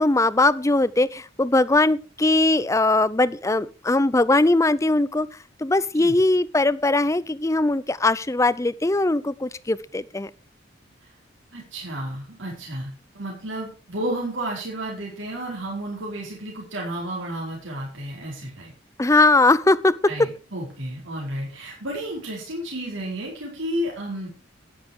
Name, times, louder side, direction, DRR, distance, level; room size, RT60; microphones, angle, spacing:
voice 1, 0.0-5.3 5.6-10.3 19.0-19.9, left 2 dB, 15° left, 17 dB, 0.5 m, -20 dB
voice 2, 11.5-18.7 20.1-24.3, right 1 dB, 85° right, -3 dB, 4.6 m, -32 dB
11.0 x 10.0 x 4.8 m, 0.34 s
head